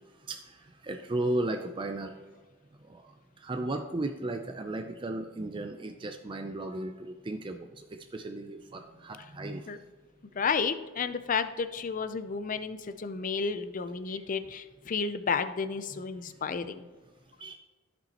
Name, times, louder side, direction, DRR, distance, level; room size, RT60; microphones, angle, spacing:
voice 1, 0.8-2.1 2.9-3.0 3.4-7.7 8.1-9.7 15.9-16.0 16.6-16.7 17.4-17.6, right 2 dB, 25° right, 5 dB, 0.4 m, -35 dB
voice 2, 10.4-16.8, left 5 dB, 40° left, 11 dB, 0.5 m, -32 dB
14.5 x 5.3 x 2.9 m, 1.3 s
head